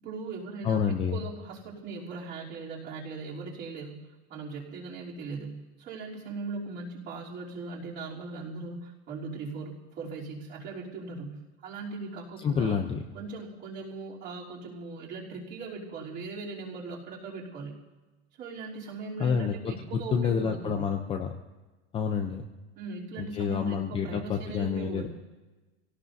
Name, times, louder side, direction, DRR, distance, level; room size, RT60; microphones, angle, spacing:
voice 1, 0.0-12.8 13.1-17.8 18.3-20.9 22.7-25.1, right 3 dB, 35° right, -4 dB, 3.3 m, -39 dB
voice 2, 0.6-1.2 12.4-13.0 19.2-21.3 21.9-22.5 23.2-25.1, left 6 dB, 15° left, 4 dB, 0.6 m, -28 dB
26.0 x 17.5 x 2.7 m, 1.2 s
supercardioid pair, 160°, 34 cm